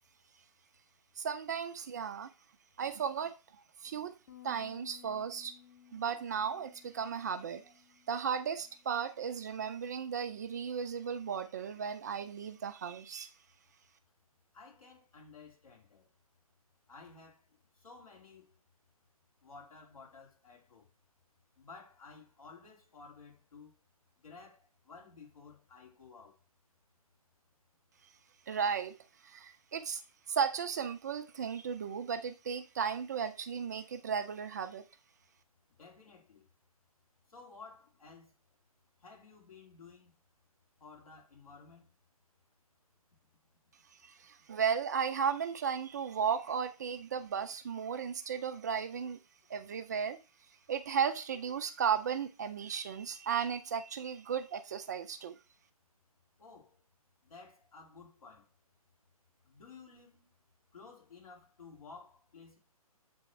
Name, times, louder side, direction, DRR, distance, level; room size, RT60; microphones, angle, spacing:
voice 1, 1.2-2.3 2.8-4.1 4.4-5.5 5.9-7.7 8.1-13.3 28.5-29.0 29.2-30.0 30.3-34.9 43.9-49.2 49.5-50.2 50.5-55.4, right 7 dB, 30° right, 0.4 m, -35 dB
Bass guitar, 4.3-10.5, left 10 dB, 40° left, 1.1 m, -60 dB
voice 2, 14.5-16.1 16.9-18.6 19.4-20.9 21.6-23.7 24.2-26.4 35.8-36.5 37.3-38.3 39.0-40.1 40.8-41.9 56.4-56.8 57.2-58.5 59.4-60.3 60.7-62.6, left 4 dB, 65° left, 3.0 m, -54 dB
8.0 x 3.4 x 4.4 m
figure-of-eight pair, 140°, 19 cm